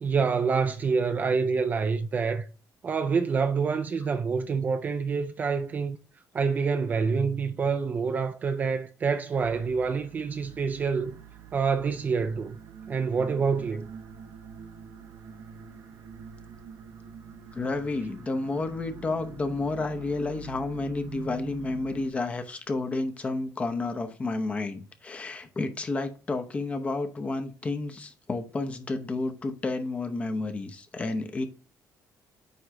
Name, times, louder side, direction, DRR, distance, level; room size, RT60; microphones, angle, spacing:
voice 1, 0.0-2.5 2.8-6.0 6.3-11.2 11.5-12.6 12.9-13.9, right 5 dB, 25° right, 0.4 m, -27 dB
sound 1, 9.3-22.1, right 6 dB, 55° right, 0.9 m, -45 dB
voice 2, 17.5-31.5, left 3 dB, 20° left, 0.7 m, -31 dB
9.2 x 3.1 x 3.7 m
cardioid pair, 175°, 7 cm